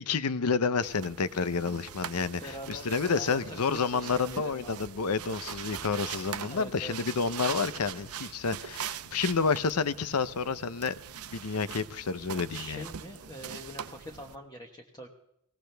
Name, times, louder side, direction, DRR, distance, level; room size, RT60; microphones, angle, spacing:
voice 1, 0.0-12.8, left 5 dB, 85° left, 0.7 m, -30 dB
sound 1, 0.8-14.4, right 9 dB, 75° right, 0.7 m, -42 dB
voice 2, 2.4-4.8 6.4-7.2 12.5-15.1, equal, 20° left, 1.3 m, -44 dB
21.5 x 18.0 x 3.4 m
head